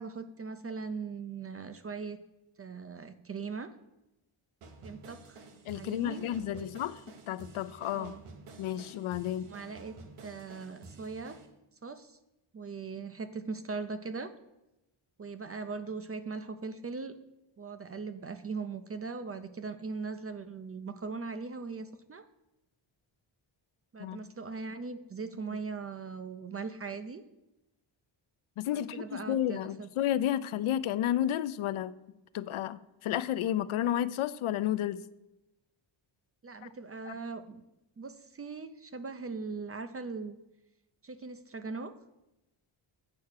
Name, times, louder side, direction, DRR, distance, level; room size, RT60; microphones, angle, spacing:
voice 1, 0.0-2.2 2.6-3.7 4.8-5.4 5.7-6.7 7.9-8.2 9.5-9.9 10.2-11.4 11.8-12.2 12.5-14.3 15.2-17.1 17.6-22.3 23.9-27.2 28.7-29.9 36.4-37.6 38.0-40.4 41.0-41.9, right 4 dB, 30° right, 11 dB, 0.4 m, -40 dB
sound 1, 4.6-11.5, right 3 dB, 90° right, 1.3 m, -51 dB
voice 2, 5.7-7.0 7.3-8.1 8.6-9.5 24.0-24.2 28.6-31.9 32.3-35.0 36.6-36.7 37.1-37.2, left 11 dB, 75° left, 15 dB, 0.5 m, -31 dB
8.6 x 4.7 x 6.4 m, 0.94 s
wide cardioid pair, 150°, 49 cm